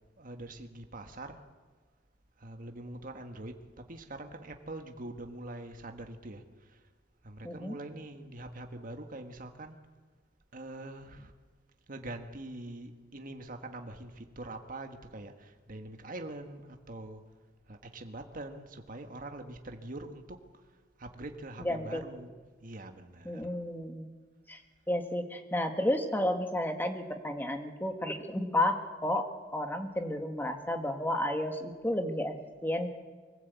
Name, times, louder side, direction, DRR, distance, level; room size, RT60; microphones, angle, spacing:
voice 1, 0.2-1.4 2.4-3.6 3.9-6.8 7.2-9.8 10.5-11.3 11.9-17.2 17.7-20.4 21.0-22.4 22.6-23.4, right 2 dB, 45° right, 5 dB, 1.6 m, -44 dB
voice 2, 7.4-7.8 21.6-22.0 23.2-24.1 24.5-24.6 24.9-32.9, left 1 dB, 10° left, 5 dB, 1.7 m, -32 dB
24.0 x 16.0 x 8.3 m, 1.4 s
head